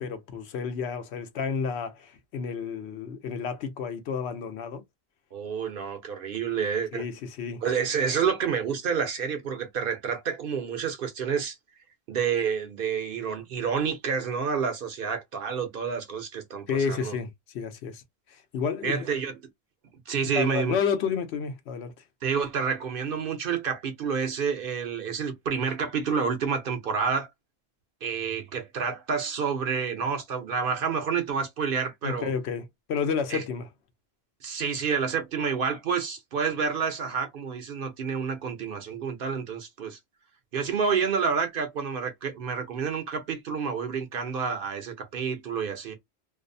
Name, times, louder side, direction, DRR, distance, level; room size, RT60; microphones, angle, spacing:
voice 1, 0.0-4.8 6.9-7.6 16.7-18.0 18.3-19.1 20.2-21.9 32.0-33.7, left 6 dB, 80° left, 0.9 m, -31 dB
voice 2, 5.3-7.0 7.6-11.6 12.1-17.1 18.8-19.3 20.1-20.8 22.2-27.3 28.0-32.3 33.3-33.4 34.4-40.0 40.5-46.0, right 6 dB, 60° right, 0.8 m, -29 dB
2.6 x 2.0 x 2.5 m
omnidirectional pair, 1.1 m